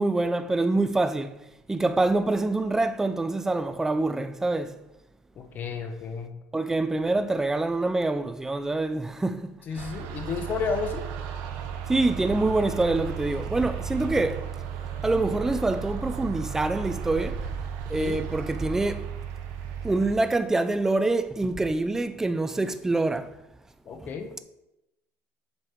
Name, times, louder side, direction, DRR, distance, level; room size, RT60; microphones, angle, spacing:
voice 1, 0.0-1.4 1.7-4.7 6.5-9.9 11.9-14.5 15.0-17.4 17.9-19.1 19.8-23.3 24.0-24.1, right 2 dB, 10° right, 0.4 m, -25 dB
voice 2, 5.4-6.4 7.1-7.2 9.7-11.1 18.0-18.2 23.9-24.4, left 5 dB, 35° left, 0.9 m, -32 dB
sound 1, 9.8-20.2, right 7 dB, 85° right, 1.0 m, -34 dB
7.1 x 5.1 x 4.5 m
cardioid pair, 155°, 6 cm